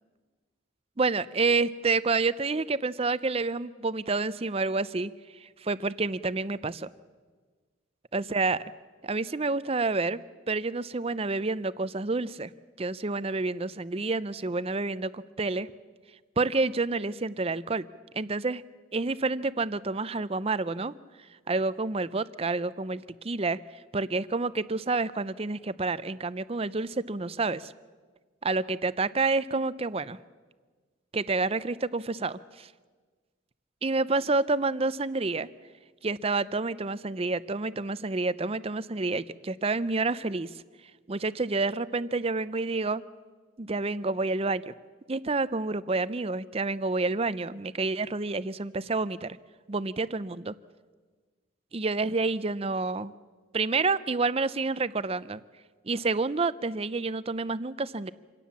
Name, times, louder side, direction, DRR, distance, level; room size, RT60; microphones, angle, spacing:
voice 1, 1.0-5.1 5.4-6.9 8.1-8.6 9.0-12.5 12.8-15.7 16.4-17.9 18.1-18.6 18.9-20.9 21.5-27.7 28.4-30.2 31.1-32.7 33.8-35.5 36.0-40.5 41.1-43.0 43.6-44.7 45.1-49.4 49.7-50.5 51.7-53.1 53.5-55.4 55.8-58.1, right 3 dB, 30° right, 16 dB, 0.6 m, -29 dB
26.5 x 17.5 x 7.2 m, 1.4 s
head